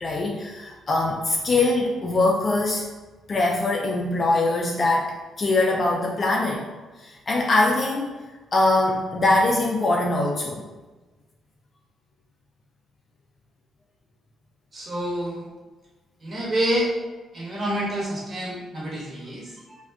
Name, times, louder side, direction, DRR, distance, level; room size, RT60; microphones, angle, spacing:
voice 1, 0.0-2.9 3.3-6.6 7.0-8.1 8.5-10.6, left 2 dB, 40° left, -1 dB, 0.3 m, -22 dB
voice 2, 14.7-15.5 16.2-16.9 17.3-19.8, equal, 35° right, -5 dB, 1.0 m, -28 dB
2.3 x 2.2 x 3.4 m, 1.2 s
cardioid pair, 90°, 0 cm